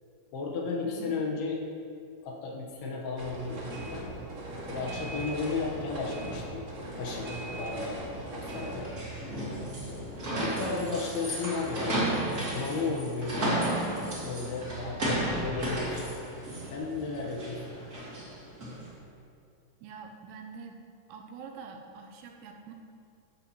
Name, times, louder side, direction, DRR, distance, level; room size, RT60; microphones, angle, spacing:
voice 1, 0.3-1.6 2.2-4.0 4.7-6.7 7.0-7.3 7.6-8.0 8.3-8.9 10.4-12.0 12.4-13.7 14.1-16.1 16.7-17.8, left 4 dB, 75° left, -2 dB, 3.0 m, -34 dB
voice 2, 0.8-1.2 10.3-10.9 19.8-20.8 21.1-22.7, right 6 dB, 80° right, 2 dB, 2.7 m, -44 dB
sound 1, 3.2-8.8, right 1 dB, 50° right, 1.5 m, -39 dB
sound 2, 8.5-18.9, right 1 dB, 25° right, 2.4 m, -33 dB
13.5 x 9.6 x 3.0 m, 2.5 s
omnidirectional pair, 4.9 m